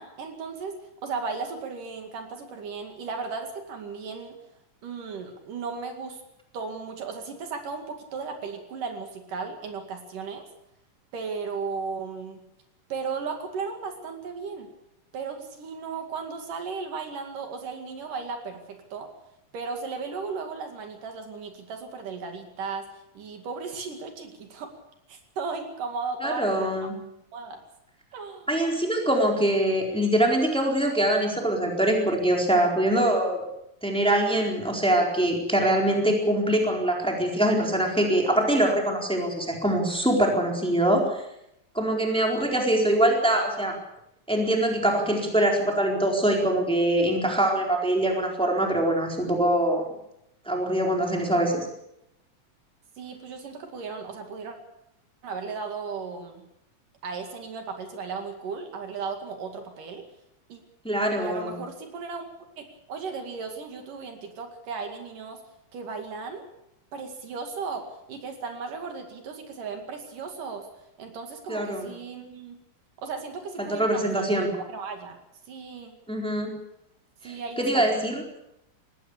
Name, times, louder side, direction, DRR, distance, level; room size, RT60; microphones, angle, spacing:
voice 1, 0.0-4.4 4.8-6.2 6.5-10.5 11.1-12.4 12.9-14.7 15.1-19.1 19.5-22.9 23.2-24.7 25.1-26.7 27.3-27.6 28.1-28.5 53.0-54.6 55.2-56.4 57.0-60.1 60.5-60.6 61.2-62.3 62.6-65.4 65.7-66.4 66.9-70.7 71.0-72.6 73.0-75.2 75.5-76.0 77.2-77.9, right 5 dB, 70° right, 5 dB, 3.8 m, -35 dB
voice 2, 26.2-26.9 28.5-33.4 33.8-41.2 41.7-43.7 44.3-49.8 50.5-51.7 60.8-61.5 71.5-71.9 73.6-74.5 76.1-76.5 77.2-78.2, right 1 dB, ahead, 0 dB, 3.9 m, -23 dB
20.5 x 16.0 x 8.5 m, 0.82 s
omnidirectional pair, 4.0 m